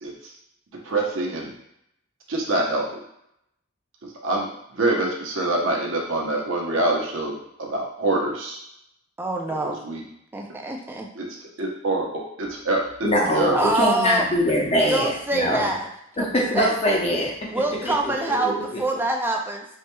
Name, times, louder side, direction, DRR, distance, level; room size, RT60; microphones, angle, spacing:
voice 1, 0.0-0.3 0.8-1.5 2.3-3.0 4.0-8.6 9.5-10.0 11.1-13.6, right 2 dB, 70° right, -1 dB, 0.8 m, -26 dB
voice 2, 9.2-9.8 10.3-11.1 13.5-14.3 14.9-15.9 16.2-16.3 16.5-16.8 17.5-19.7, right 2 dB, 10° right, 1 dB, 0.4 m, -25 dB
voice 3, 13.0-15.7 16.2-17.3 17.8-18.6, equal, 30° left, -1 dB, 0.7 m, -23 dB
4.5 x 3.1 x 2.2 m, 0.76 s
head